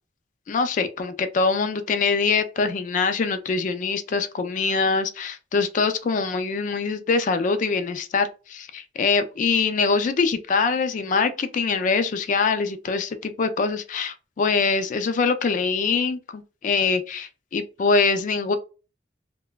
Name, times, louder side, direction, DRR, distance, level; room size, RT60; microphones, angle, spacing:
voice 1, 0.5-18.6, left 4 dB, 45° left, 0.3 m, -23 dB
2.9 x 2.1 x 2.2 m
head